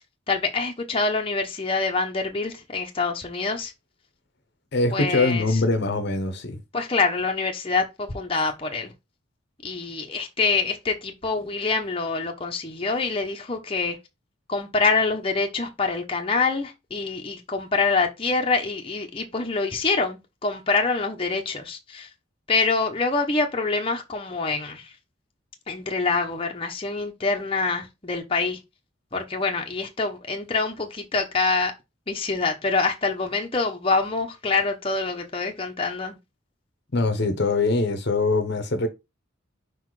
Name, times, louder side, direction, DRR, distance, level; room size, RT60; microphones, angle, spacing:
voice 1, 0.3-3.7 4.9-5.6 6.7-8.9 9.6-14.0 14.5-22.1 22.5-24.9 25.7-28.6 29.1-31.7 32.1-36.2, left 4 dB, 25° left, 0.9 m, -25 dB
voice 2, 4.7-6.6 36.9-38.9, left 3 dB, 55° left, 1.0 m, -23 dB
5.0 x 4.0 x 4.8 m
head